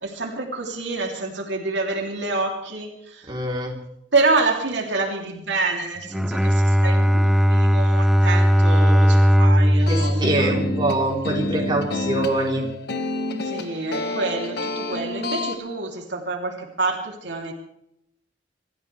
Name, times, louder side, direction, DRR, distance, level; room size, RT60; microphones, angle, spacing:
voice 1, 0.0-3.3 4.1-10.6 13.4-17.5, right 3 dB, 75° right, 0 dB, 3.2 m, -27 dB
voice 2, 3.3-3.7 9.9-12.7, right 2 dB, 25° right, -2 dB, 3.8 m, -24 dB
Bowed string instrument, 6.0-11.4, equal, ahead, 0.6 m, -18 dB
sound 1, 9.8-15.6, left 2 dB, 60° left, 1.6 m, -29 dB
26.5 x 14.5 x 3.4 m, 0.78 s
head